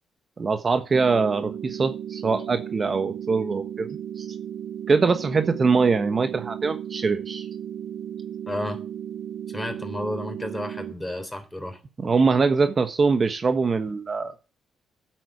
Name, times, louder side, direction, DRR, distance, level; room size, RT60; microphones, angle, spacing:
voice 1, 0.4-4.2 4.9-7.5 12.0-14.3, right 4 dB, 40° right, 1.2 m, -23 dB
sound 1, 0.9-10.9, right 10 dB, 90° right, 0.9 m, -35 dB
voice 2, 8.5-8.8 9.5-11.8, left 1 dB, 10° left, 3.7 m, -32 dB
9.2 x 7.8 x 7.7 m
supercardioid pair, 65°, 0 cm